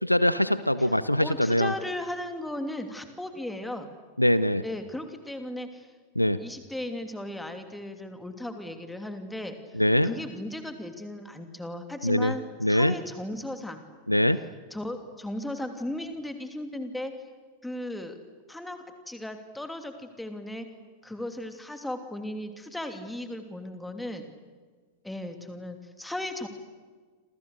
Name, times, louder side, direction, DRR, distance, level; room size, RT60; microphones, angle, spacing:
voice 1, 0.0-1.7 4.2-4.6 6.2-6.4 9.7-10.1 12.0-12.3 12.6-12.9 14.1-14.4, left 1 dB, 90° left, 15 dB, 0.8 m, -23 dB
voice 2, 0.8-3.9 4.6-5.9 6.4-9.5 10.0-13.8 14.7-17.1 17.6-18.2 18.5-20.7 21.0-24.2 25.0-26.5, left 1 dB, 5° left, 6 dB, 2.9 m, -36 dB
28.0 x 27.5 x 6.7 m, 1.5 s
figure-of-eight pair, 90°, 0 cm